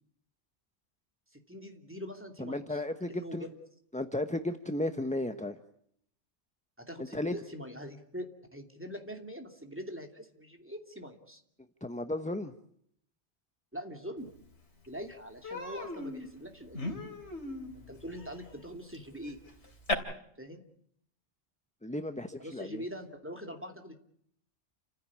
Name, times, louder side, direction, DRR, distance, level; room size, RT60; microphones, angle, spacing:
voice 1, 1.3-2.8 3.1-3.5 6.8-11.4 13.7-14.3 14.9-17.0 17.7-19.4 20.4-20.6 22.4-24.0, equal, 10° right, 4 dB, 2.8 m, -43 dB
voice 2, 2.4-3.4 3.9-5.6 7.1-7.4 11.8-12.5 21.8-22.8, left 1 dB, 5° left, 8 dB, 0.9 m, -34 dB
Human voice, 14.4-14.5 14.8-15.0 15.4-19.9, left 2 dB, 80° left, 3.6 m, -38 dB
30.0 x 15.5 x 8.5 m, 0.70 s
omnidirectional pair, 1.1 m